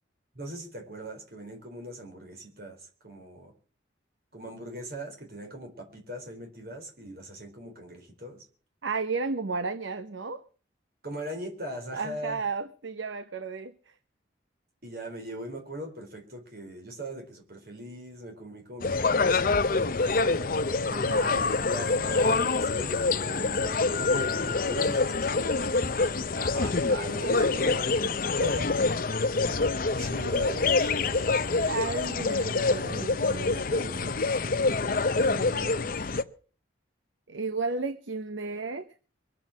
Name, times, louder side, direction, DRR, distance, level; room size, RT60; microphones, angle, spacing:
voice 1, 0.3-2.8 3.0-3.5 4.3-8.4 11.0-12.4 14.8-20.1 20.8-27.8 29.9-31.4 35.1-35.9, right 1 dB, 50° right, 4.2 m, -41 dB
voice 2, 8.8-10.4 11.9-13.9 20.9-21.5 27.2-27.5 27.7-27.8 28.4-28.7 31.7-34.4 37.3-38.9, right 4 dB, 80° right, 0.8 m, -33 dB
sound 1, 18.8-36.2, left 3 dB, 45° left, 0.7 m, -26 dB
22.5 x 7.8 x 7.4 m
head